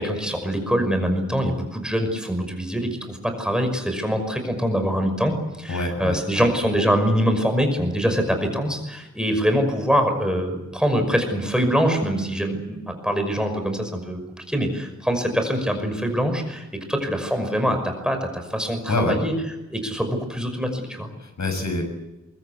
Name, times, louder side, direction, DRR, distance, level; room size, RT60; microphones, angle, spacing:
voice 1, 0.0-19.3 19.7-21.1, equal, 5° right, 5 dB, 5.7 m, -24 dB
voice 2, 5.7-6.5 18.9-19.2 21.2-21.8, left 2 dB, 70° left, 5 dB, 7.1 m, -26 dB
23.5 x 22.5 x 8.4 m, 1.0 s
wide cardioid pair, 110°, 30 cm